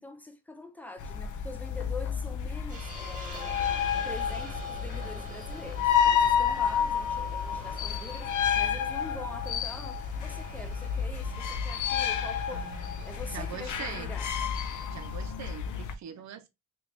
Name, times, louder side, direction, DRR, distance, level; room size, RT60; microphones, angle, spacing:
voice 1, 0.0-3.6 4.0-12.7 13.0-14.3 16.1-16.2, left 2 dB, 5° left, 0.5 m, -44 dB
sound 1, 1.0-15.9, left 7 dB, 70° left, 0.6 m, -30 dB
Hiss, 2.7-15.2, right 2 dB, 25° right, 1.1 m, -49 dB
voice 2, 12.5-13.0 13.3-14.1 14.9-16.5, right 8 dB, 60° right, 0.6 m, -42 dB
3.4 x 3.0 x 2.7 m
cardioid pair, 130°, 32 cm